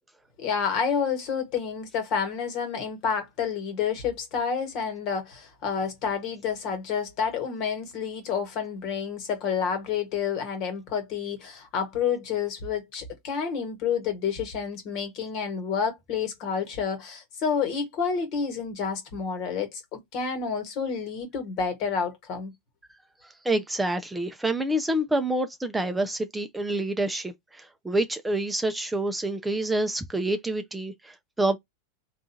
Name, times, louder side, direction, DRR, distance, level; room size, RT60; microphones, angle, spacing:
voice 1, 0.4-22.5, left 6 dB, 50° left, 1.5 m, -29 dB
voice 2, 23.2-31.6, right 1 dB, 10° right, 0.5 m, -27 dB
3.6 x 2.4 x 2.7 m
hypercardioid pair, 100°, 0 cm